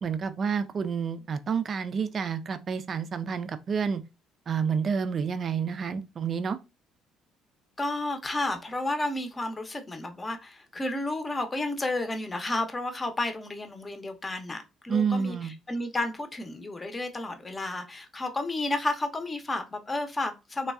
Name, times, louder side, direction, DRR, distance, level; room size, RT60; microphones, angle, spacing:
voice 1, 0.0-4.0 4.5-6.6 14.9-15.5, right 6 dB, 45° right, 0.4 m, -29 dB
voice 2, 7.8-20.7, left 2 dB, 25° left, 0.7 m, -32 dB
3.3 x 2.3 x 2.3 m
hypercardioid pair, 50°, 0 cm